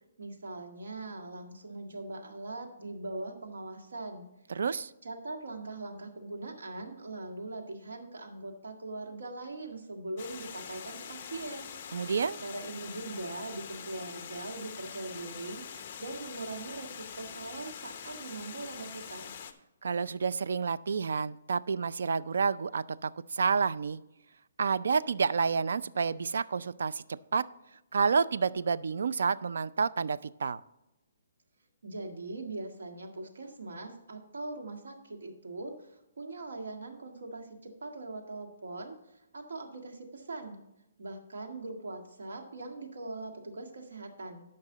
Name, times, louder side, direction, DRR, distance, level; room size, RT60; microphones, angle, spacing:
voice 1, 0.2-4.3 5.0-11.8 12.4-15.6 16.0-19.4 31.8-40.6 41.0-44.5, right 2 dB, 90° right, 4 dB, 1.7 m, -41 dB
voice 2, 4.5-4.9 11.9-12.4 19.8-24.0 24.6-27.0 27.3-27.5 27.9-30.6, right 5 dB, 70° right, 16 dB, 0.4 m, -29 dB
Water, 10.2-19.5, left 7 dB, 30° left, 0.7 m, -44 dB
12.5 x 5.4 x 3.9 m, 0.94 s
hypercardioid pair, 170°, 0 cm